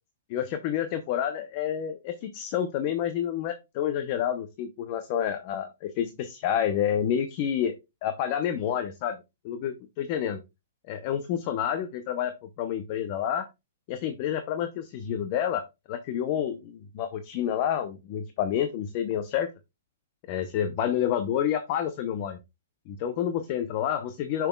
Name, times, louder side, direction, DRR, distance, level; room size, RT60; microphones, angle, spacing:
voice 1, 0.3-7.8 8.0-9.2 9.4-10.4 10.9-13.5 13.9-15.6 15.9-19.5 20.3-22.4 22.9-24.5, left 9 dB, 35° left, 9 dB, 0.7 m, -29 dB
6.9 x 6.0 x 2.3 m, 0.24 s
hypercardioid pair, 160°, 0 cm